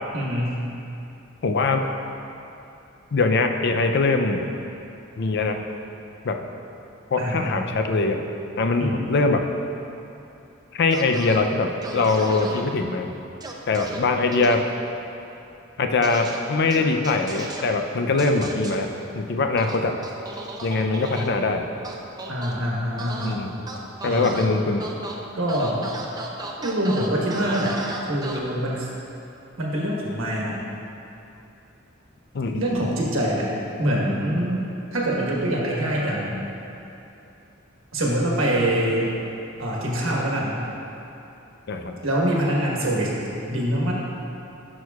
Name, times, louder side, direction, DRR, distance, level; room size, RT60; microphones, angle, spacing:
voice 1, 0.1-0.5 7.2-7.6 8.8-9.0 22.3-23.4 24.0-24.4 25.3-25.8 26.6-27.8 28.1-28.9 29.6-30.5 32.5-33.5 33.8-34.6 34.9-36.5 37.9-39.1 39.6-40.6 42.0-43.1 43.5-43.9, right 1 dB, 80° right, -3 dB, 1.3 m, -24 dB
voice 2, 1.4-1.8 3.1-4.5 5.2-5.6 6.2-6.4 7.1-8.2 8.6-9.4 10.7-13.1 13.7-14.6 15.8-18.9 19.1-19.9 20.6-21.6 23.2-23.6 24.0-24.8 32.3-32.8 41.7-41.9, left 3 dB, 55° left, 5 dB, 0.5 m, -22 dB
sound 1, 10.9-11.4 11.8-12.6 13.4-14.0 14.3-14.5 16.0-16.4 16.7-17.6 18.2-18.8 19.6-21.3 21.8-22.5 23.0-23.3 23.7-24.5 24.8-25.1 25.5-28.4, right 2 dB, 20° right, 0.6 m, -35 dB
10.5 x 6.3 x 2.4 m, 2.9 s
head